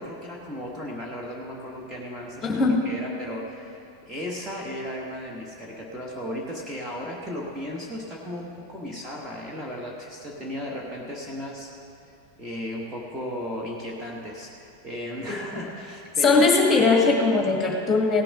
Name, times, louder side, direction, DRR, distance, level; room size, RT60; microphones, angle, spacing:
voice 1, 0.0-11.7 12.4-16.5, equal, 10° right, -3 dB, 1.4 m, -35 dB
voice 2, 2.4-2.9 16.2-18.2, left 3 dB, 15° left, 1 dB, 1.9 m, -20 dB
17.0 x 6.8 x 6.0 m, 2.7 s
figure-of-eight pair, 90°, 0 cm